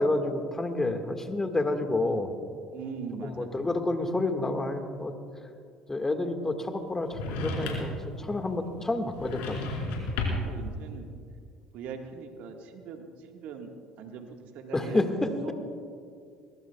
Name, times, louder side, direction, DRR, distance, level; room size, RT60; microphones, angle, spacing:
voice 1, 0.0-2.3 3.2-5.1 5.9-9.6 14.7-15.5, left 2 dB, 20° left, 6 dB, 1.7 m, -29 dB
voice 2, 2.7-3.5 8.4-8.6 10.4-11.1 11.7-15.1 15.4-15.5, right 6 dB, 65° right, 4 dB, 1.6 m, -41 dB
sound 1, 7.1-8.1 9.1-10.6, left 2 dB, 70° left, 4.3 m, -32 dB
22.0 x 21.5 x 2.3 m, 2.3 s
hypercardioid pair, 65°, 3 cm